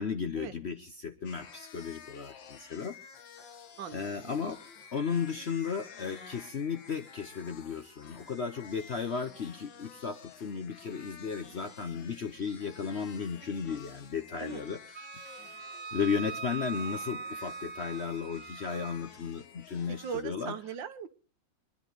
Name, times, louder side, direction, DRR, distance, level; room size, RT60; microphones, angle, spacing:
voice 1, 0.0-3.0 3.9-4.6 4.9-15.1 15.9-20.5, left 6 dB, 50° left, 8 dB, 0.8 m, -35 dB
sound 1, 1.2-20.2, left 6 dB, 80° left, 2.0 m, -51 dB
voice 2, 3.8-4.3 14.4-14.6 20.0-21.1, right 7 dB, 75° right, 11 dB, 1.7 m, -39 dB
Wind instrument woodwind instrument, 14.9-19.0, right 5 dB, 55° right, 1.3 m, -41 dB
24.5 x 11.0 x 3.9 m, 0.37 s
omnidirectional pair, 2.0 m